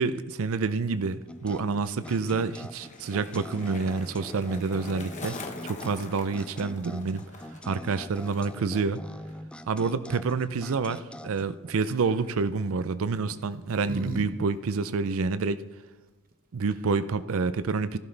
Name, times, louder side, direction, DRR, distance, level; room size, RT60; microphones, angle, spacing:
voice 1, 0.0-5.4 5.6-7.2 7.6-9.0 9.7-15.6 16.5-18.0, right 4 dB, 65° right, 14 dB, 0.5 m, -28 dB
Skateboard, 1.2-8.8 9.0-9.5, left 3 dB, 35° left, 1.2 m, -45 dB
sound 1, 1.3-11.7, left 1 dB, 5° left, 0.3 m, -44 dB
sound 2, 11.8-12.2 13.2-14.3 14.6-14.7 16.3-16.4 16.6-17.0, right 1 dB, 40° right, 1.0 m, -37 dB
16.0 x 11.0 x 3.3 m, 1.3 s
head